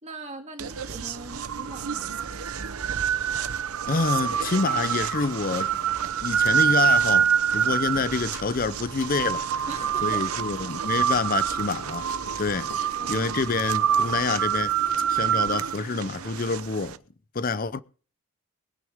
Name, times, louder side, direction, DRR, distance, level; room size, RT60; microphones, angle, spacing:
voice 1, 0.0-2.2 9.7-10.3 13.0-13.4, right 2 dB, 30° right, 2.1 m, -41 dB
sound 1, 0.6-17.0, right 8 dB, 85° right, 0.8 m, -26 dB
voice 2, 3.9-5.7 6.2-9.4 10.0-12.1 12.4-14.8 15.1-17.0 17.3-17.8, left 4 dB, 40° left, 0.6 m, -27 dB
sound 2, 4.2-14.5, left 3 dB, 55° left, 1.1 m, -49 dB
22.5 x 9.4 x 3.6 m
head